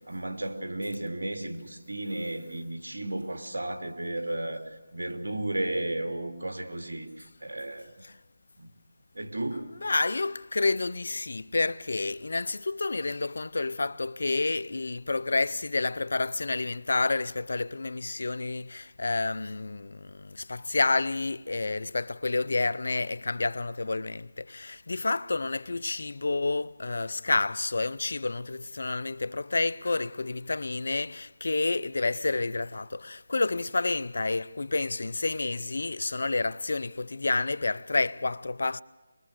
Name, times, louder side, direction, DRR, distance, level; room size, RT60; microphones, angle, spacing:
voice 1, 0.1-4.6 4.9-7.9 8.6-8.7 9.1-9.7, right 1 dB, 80° right, 2.9 m, -33 dB
voice 2, 9.5-38.8, left 3 dB, 65° left, 0.6 m, -29 dB
23.0 x 22.5 x 6.6 m
figure-of-eight pair, 160°, 0 cm